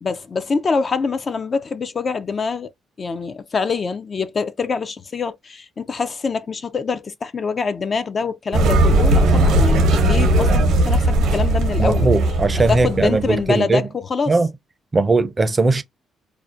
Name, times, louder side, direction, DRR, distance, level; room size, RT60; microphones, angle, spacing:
voice 1, 0.0-2.7 3.0-12.1 12.7-14.4, left 5 dB, 40° left, 0.3 m, -25 dB
sound 1, 8.5-13.4, right 1 dB, 85° right, 0.7 m, -17 dB
voice 2, 11.8-13.8 14.3-14.5 14.9-15.8, right 3 dB, 30° right, 0.4 m, -18 dB
2.4 x 2.0 x 2.5 m
cardioid pair, 90°, 0 cm